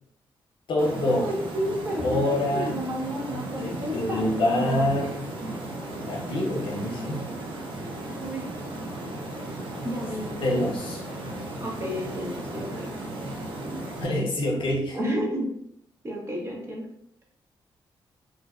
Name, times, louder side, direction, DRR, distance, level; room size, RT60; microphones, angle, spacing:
voice 1, 0.7-1.3 2.0-2.7 3.5-5.1 5.9-7.3 10.4-11.0 14.0-15.2, left 1 dB, 65° left, -1 dB, 0.8 m, -26 dB
sound 1, 0.8-14.1, right 1 dB, 75° right, 0.6 m, -35 dB
voice 2, 1.2-4.9 8.2-8.5 9.8-10.3 11.6-12.9 14.9-15.5 16.0-16.9, equal, 30° right, -1 dB, 0.7 m, -32 dB
2.5 x 2.1 x 2.3 m, 0.74 s
cardioid pair, 80°, 9 cm